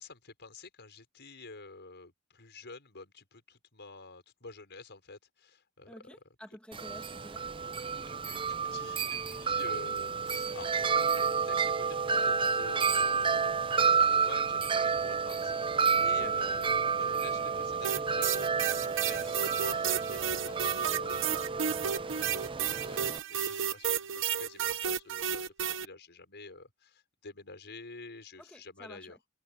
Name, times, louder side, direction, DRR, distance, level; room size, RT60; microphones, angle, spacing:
voice 1, 0.0-6.0 8.1-29.2, left 3 dB, 50° left, 6.0 m, -49 dB
voice 2, 5.9-7.5 16.2-16.4 28.4-29.2, equal, 5° left, 1.7 m, -51 dB
Wind chime, 6.7-23.2, right 5 dB, 25° right, 0.6 m, -30 dB
sound 1, 17.8-25.9, right 9 dB, 60° right, 1.0 m, -32 dB
open air
head